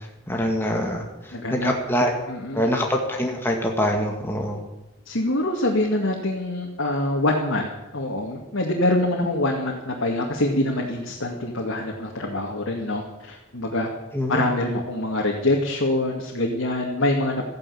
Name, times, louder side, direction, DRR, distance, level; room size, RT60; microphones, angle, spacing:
voice 1, 0.3-2.1 2.5-4.6 14.1-14.4, equal, 10° left, 1 dB, 2.0 m, -24 dB
voice 2, 1.3-1.7 2.3-2.7 5.1-13.9 14.3-17.5, left 1 dB, 90° left, -1 dB, 2.4 m, -25 dB
14.5 x 10.5 x 8.5 m, 1.0 s
head